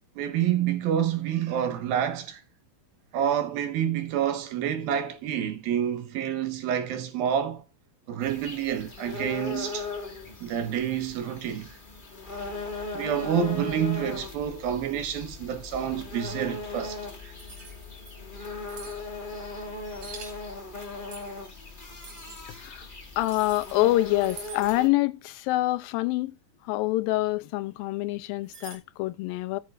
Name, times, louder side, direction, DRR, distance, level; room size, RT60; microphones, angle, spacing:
voice 1, 0.2-2.4 3.1-7.6 8.1-9.9 10.4-11.8 12.9-17.3, right 9 dB, 80° right, 3.3 m, -28 dB
sound 1, 8.2-24.9, left 3 dB, 50° left, 0.5 m, -38 dB
sound 2, 17.4-18.1 18.7-19.0 19.9-20.4 21.1-21.4 22.0-22.4 23.2-23.8 24.1-24.8 28.4-28.8, right 5 dB, 50° right, 3.6 m, -45 dB
voice 2, 23.2-26.4 26.7-29.6, left 17 dB, 85° left, 2.4 m, -26 dB
14.0 x 7.5 x 2.5 m
omnidirectional pair, 4.1 m